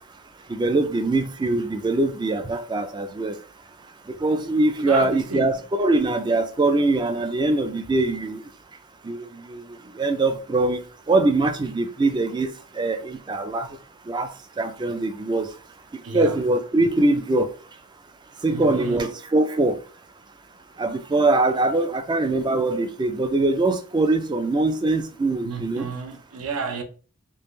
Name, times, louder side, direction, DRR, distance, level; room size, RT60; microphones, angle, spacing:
voice 1, 0.5-3.4 4.1-8.4 9.0-10.8 11.1-13.7 14.1-15.5 15.9-17.5 18.4-19.8 20.8-25.9, right 2 dB, 20° right, 0.3 m, -23 dB
voice 2, 4.9-5.6 16.0-16.3 18.5-19.1 25.4-26.8, right 4 dB, 65° right, 0.6 m, -31 dB
3.4 x 2.4 x 3.0 m
head